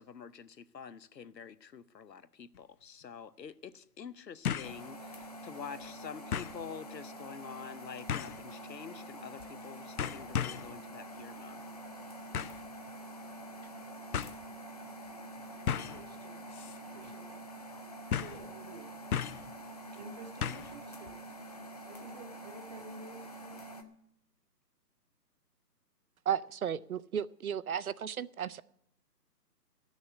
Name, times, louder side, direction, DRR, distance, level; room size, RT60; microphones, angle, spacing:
voice 1, 0.0-11.6, left 7 dB, 80° left, 0.9 m, -47 dB
sound 1, 2.5-2.6 4.5-4.8 5.2-5.3 6.3-6.6 8.1-8.4 9.4-9.6 10.0-10.7 12.3-12.7 13.6-13.7 14.1-14.4 15.7-16.0 16.5-16.8 17.0-17.1 18.1-18.5 19.1-19.5 20.4-20.8 21.1-21.2, left 8 dB, 60° left, 0.6 m, -35 dB
sound 2, 4.6-23.8, right 1 dB, 25° left, 0.6 m, -46 dB
voice 2, 15.9-16.4 16.9-17.5 18.1-18.9 19.9-21.3 21.8-23.6, right 3 dB, 25° right, 0.9 m, -51 dB
voice 3, 26.3-28.6, right 9 dB, 60° right, 0.5 m, -34 dB
14.0 x 6.4 x 9.3 m
figure-of-eight pair, 150°, 49 cm